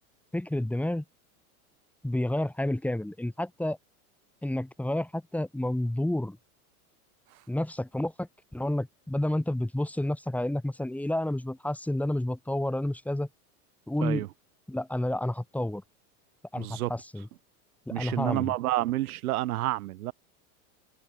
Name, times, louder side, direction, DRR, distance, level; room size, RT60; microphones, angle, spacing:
voice 1, 0.3-1.0 2.0-3.8 4.4-6.4 7.5-13.3 13.9-14.2 14.7-15.8 16.5-17.3 17.9-18.5, left 1 dB, 5° left, 5.9 m, -30 dB
voice 2, 16.6-16.9 17.9-20.1, right 16 dB, 80° right, 3.5 m, -29 dB
open air
supercardioid pair, 125°, 44 cm